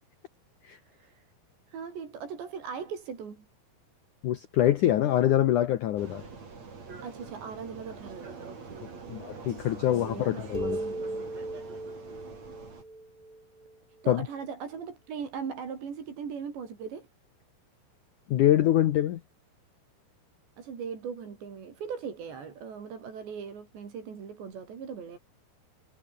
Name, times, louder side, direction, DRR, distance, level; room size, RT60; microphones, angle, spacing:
voice 1, 0.9-1.3 1.7-3.4 7.0-9.2 9.9-11.3 14.0-17.1 20.6-25.2, right 6 dB, 70° right, 6.8 m, -39 dB
voice 2, 4.2-6.2 9.1-10.8 14.1-14.2 18.3-19.2, left 12 dB, 85° left, 1.8 m, -24 dB
Vehicle, 6.0-12.8, right 4 dB, 35° right, 5.7 m, -45 dB
sound 1, 10.5-14.1, right 2 dB, 10° right, 2.3 m, -37 dB
omnidirectional pair, 5.2 m